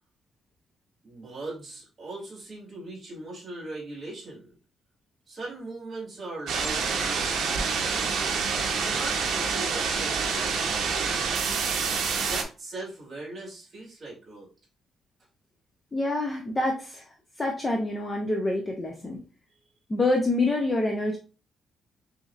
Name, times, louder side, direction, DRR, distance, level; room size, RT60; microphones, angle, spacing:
voice 1, 1.0-4.5 5.3-8.4 8.7-11.2 12.2-14.5, right 2 dB, 25° right, -6 dB, 2.3 m, -40 dB
sound 1, 6.5-12.4, right 5 dB, 70° right, 0.8 m, -27 dB
voice 2, 15.9-17.0 17.4-19.2 19.9-21.2, left 2 dB, 15° left, 1 dB, 0.6 m, -26 dB
6.1 x 2.8 x 2.4 m, 0.35 s
cardioid pair, 180°, 0 cm